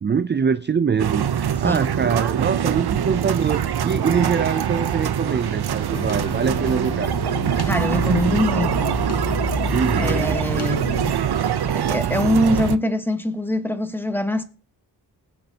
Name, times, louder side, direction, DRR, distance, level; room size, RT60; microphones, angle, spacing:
voice 1, 0.0-7.1 9.7-10.4, right 6 dB, 30° right, 0.4 m, -24 dB
sound 1, 1.0-12.8, right 9 dB, 70° right, 0.6 m, -23 dB
sound 2, 5.9-11.1, left 4 dB, 40° left, 0.7 m, -30 dB
voice 2, 7.7-8.9 9.9-10.8 11.7-14.4, left 1 dB, 5° left, 1.2 m, -23 dB
20.0 x 7.3 x 2.8 m
cardioid pair, 50°, 40 cm